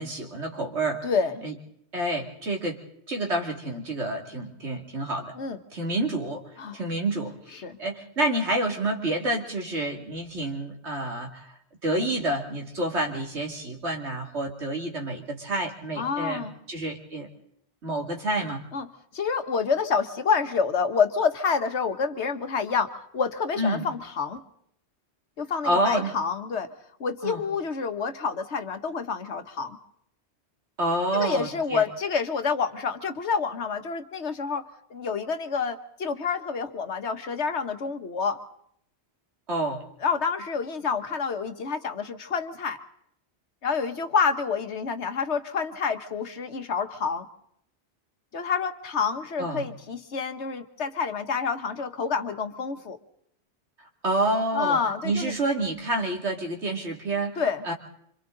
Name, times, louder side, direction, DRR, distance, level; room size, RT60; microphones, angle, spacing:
voice 1, 0.0-1.1 1.4-1.5 1.9-2.8 3.1-5.3 5.7-6.4 6.7-11.5 11.8-17.3 17.8-18.6 23.6-23.8 25.6-26.1 27.2-27.4 30.8-31.8 39.5-39.8 49.4-49.7 54.0-54.8 55.0-57.4 57.6-57.7, right 1 dB, 75° right, 2 dB, 2.9 m, -28 dB
voice 2, 1.0-1.4 5.4-5.6 6.6-6.8 7.5-7.8 16.0-16.5 18.7-18.9 19.1-24.4 25.4-26.7 27.0-29.8 31.1-34.6 34.9-38.4 40.0-42.8 43.6-47.3 48.3-53.0 54.5-55.3 57.4-57.7, left 5 dB, 80° left, 9 dB, 1.5 m, -28 dB
26.5 x 26.0 x 3.9 m, 0.71 s
omnidirectional pair, 1.1 m